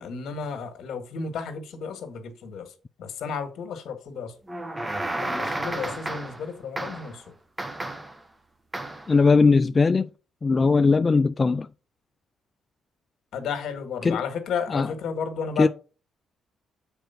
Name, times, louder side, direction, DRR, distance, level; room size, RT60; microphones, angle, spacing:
voice 1, 0.0-2.7 3.0-4.4 5.2-7.3 13.3-15.7, left 6 dB, 70° left, 1.8 m, -33 dB
sound 1, 4.5-6.5 6.8-7.2 7.6-8.2 8.7-9.1, right 1 dB, 15° right, 1.1 m, -32 dB
voice 2, 9.1-10.1 10.4-11.7 14.0-14.2 14.7-14.9 15.6-15.7, left 4 dB, 30° left, 0.3 m, -19 dB
7.1 x 4.4 x 5.7 m
cardioid pair, 90°, 0 cm